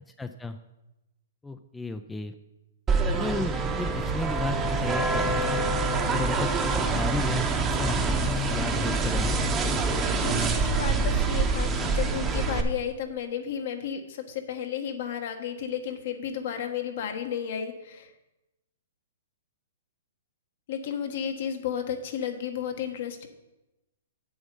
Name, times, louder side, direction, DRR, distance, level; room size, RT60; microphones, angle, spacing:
voice 1, 0.2-0.6 1.4-2.3 3.1-5.7 6.1-9.4, left 3 dB, 5° left, 8 dB, 0.4 m, -34 dB
sound 1, 2.9-12.6, right 3 dB, 20° right, 0.9 m, -26 dB
voice 2, 10.2-18.1 20.7-23.3, left 8 dB, 60° left, 6 dB, 1.3 m, -33 dB
8.1 x 7.0 x 5.4 m, 0.98 s
hypercardioid pair, 140°, 0 cm